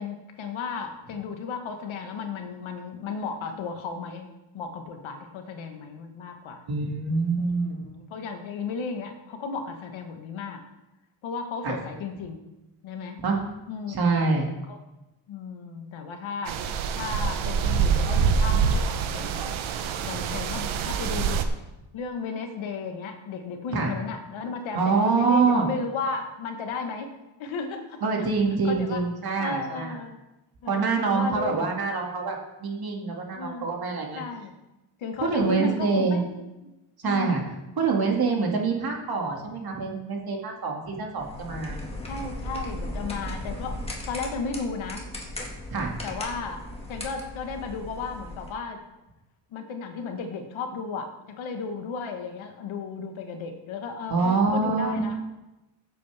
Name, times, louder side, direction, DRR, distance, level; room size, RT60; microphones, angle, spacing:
voice 1, 0.0-6.6 7.4-10.6 11.2-12.4 12.8-13.2 13.7-13.9 14.7-14.8 15.3-19.4 20.0-21.5 21.9-27.1 27.4-28.3 28.6-29.0 29.4-30.2 30.6-31.6 33.3-33.7 34.1-34.5 35.0-36.3 36.6-36.7 37.0-37.5 42.1-45.1 46.0-46.6 46.9-48.8 49.5-55.2, left 4 dB, 80° left, 5 dB, 1.6 m, -34 dB
voice 2, 6.7-7.8 11.6-11.8 13.2-13.4 13.9-14.5 23.7-23.9 24.7-25.7 28.0-30.0 30.6-34.2 35.2-36.2 37.0-37.4 37.8-41.8 45.7-45.9 54.1-55.0, right 4 dB, 50° right, 0 dB, 2.4 m, -25 dB
sound 1, 16.5-21.4, right 6 dB, 80° right, 1.0 m, -25 dB
sound 2, 41.2-48.5, left 1 dB, 10° left, 1.9 m, -37 dB
15.0 x 7.8 x 3.5 m, 0.99 s
cardioid pair, 120°, 46 cm